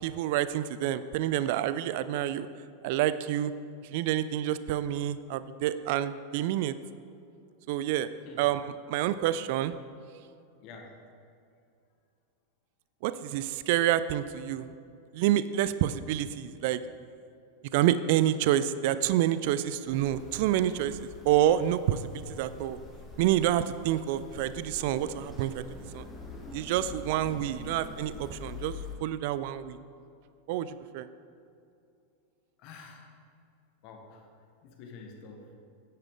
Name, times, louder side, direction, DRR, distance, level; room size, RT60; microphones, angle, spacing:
voice 1, 0.0-2.5 2.8-3.5 3.9-6.8 7.7-8.1 8.4-9.7 13.0-14.7 15.1-16.8 17.7-21.0 21.3-22.0 22.3-22.8 23.2-25.6 25.9-26.1 26.5-28.7 29.0-29.8 30.5-31.1, right 12 dB, 50° right, 14 dB, 0.3 m, -28 dB
voice 2, 10.6-10.9 32.6-33.1 33.8-34.3 34.6-35.5, left 4 dB, 40° left, 3 dB, 1.5 m, -48 dB
sound 1, 19.9-29.0, left 4 dB, 10° left, 1.8 m, -45 dB
9.8 x 9.7 x 3.8 m, 2.5 s
figure-of-eight pair, 90°, 0 cm